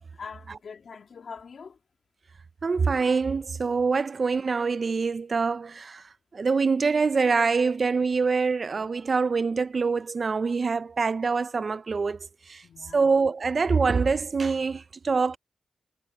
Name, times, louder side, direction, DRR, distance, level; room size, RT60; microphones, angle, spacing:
voice 1, 0.2-1.8 12.6-13.1, left 5 dB, 70° left, 2.1 m, -43 dB
voice 2, 2.6-6.0 6.3-12.2 12.5-12.6 12.9-15.4, right 4 dB, 50° right, 0.5 m, -25 dB
cardioid pair, 65°, 0 cm